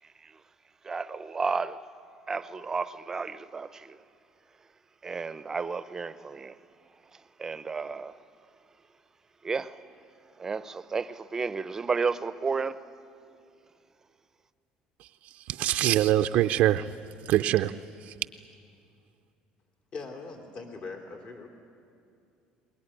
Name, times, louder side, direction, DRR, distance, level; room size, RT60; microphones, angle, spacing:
voice 1, 0.8-1.8 2.3-4.0 5.0-6.6 7.1-8.2 9.4-9.8 10.4-12.8, right 4 dB, 20° right, 0.7 m, -32 dB
voice 2, 15.5-16.9 17.2-17.7 18.1-18.2, right 13 dB, 65° right, 0.5 m, -23 dB
voice 3, 19.9-21.5, left 4 dB, 50° left, 3.1 m, -41 dB
22.5 x 21.0 x 10.0 m
cardioid pair, 130°, 3 cm